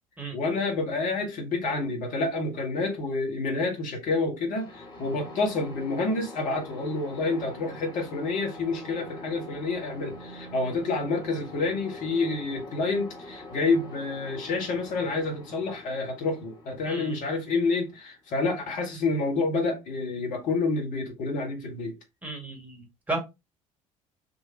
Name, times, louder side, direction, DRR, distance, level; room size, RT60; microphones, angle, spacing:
voice 1, 0.3-22.0, left 3 dB, 50° left, 1.4 m, -28 dB
sound 1, 4.6-18.2, left 1 dB, 25° left, 1.4 m, -44 dB
voice 2, 16.9-17.2 22.2-23.2, right 2 dB, 10° right, 1.6 m, -34 dB
3.9 x 2.5 x 2.9 m
figure-of-eight pair, 55°, 17 cm